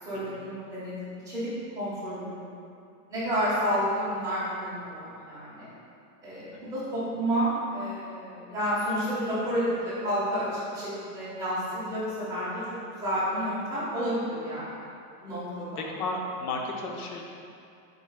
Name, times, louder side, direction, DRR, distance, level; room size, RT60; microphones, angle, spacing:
voice 1, 0.0-0.9 1.2-1.5 1.7-2.4 3.1-5.7 6.2-12.6 12.9-14.8 15.2-15.8, equal, 5° right, -13 dB, 1.5 m, -30 dB
voice 2, 15.8-17.2, left 2 dB, 65° left, 0 dB, 1.0 m, -34 dB
7.8 x 5.0 x 2.4 m, 2.5 s
supercardioid pair, 170°, 48 cm